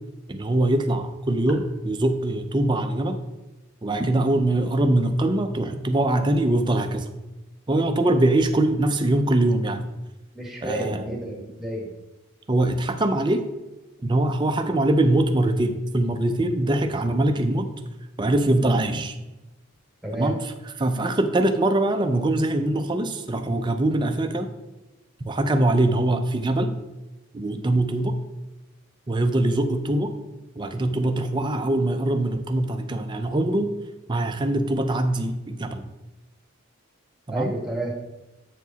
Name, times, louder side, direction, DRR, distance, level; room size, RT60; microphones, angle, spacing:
voice 1, 0.3-3.2 3.8-7.1 7.7-9.8 10.6-11.1 12.5-13.4 14.0-17.7 18.2-19.1 20.1-20.4 20.8-24.5 25.2-26.7 27.3-28.2 29.1-30.1 30.6-33.7 34.1-35.9 37.3-37.5, right 1 dB, 20° right, 6 dB, 0.5 m, -23 dB
voice 2, 10.3-11.9 20.0-20.3 37.3-37.9, right 1 dB, ahead, -2 dB, 1.3 m, -30 dB
8.0 x 4.7 x 4.0 m, 1.0 s
head